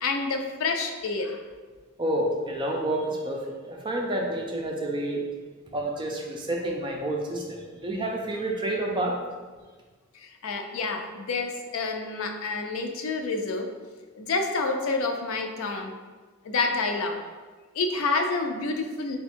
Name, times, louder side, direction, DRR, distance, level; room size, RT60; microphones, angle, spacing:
voice 1, 0.0-1.4 10.2-13.7 14.2-15.9 16.4-17.2 17.8-19.2, left 3 dB, 75° left, 4 dB, 0.4 m, -28 dB
voice 2, 2.0-5.3 5.7-9.2, right 1 dB, 20° right, 0 dB, 0.5 m, -29 dB
3.5 x 2.2 x 4.3 m, 1.4 s
head